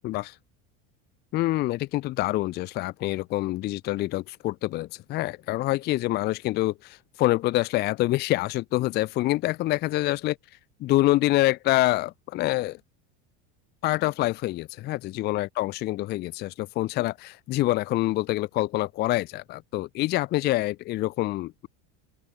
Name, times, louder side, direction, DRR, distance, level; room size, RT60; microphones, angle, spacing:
voice 1, 0.0-0.4 1.3-10.4 10.8-12.8 13.8-21.7, left 17 dB, 30° left, 0.6 m, -26 dB
open air
cardioid pair, 170°, 35 cm